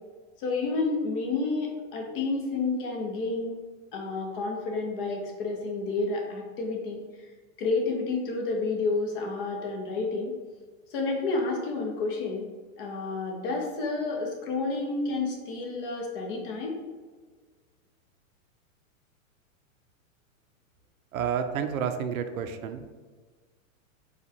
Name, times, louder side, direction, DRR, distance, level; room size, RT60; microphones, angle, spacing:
voice 1, 0.4-3.6 3.9-7.0 7.6-10.4 10.9-12.5 12.8-16.8, left 3 dB, 40° left, 0 dB, 0.9 m, -30 dB
voice 2, 21.1-22.8, right 7 dB, 80° right, 8 dB, 0.6 m, -30 dB
4.0 x 2.4 x 4.4 m, 1.4 s
supercardioid pair, 155°, 41 cm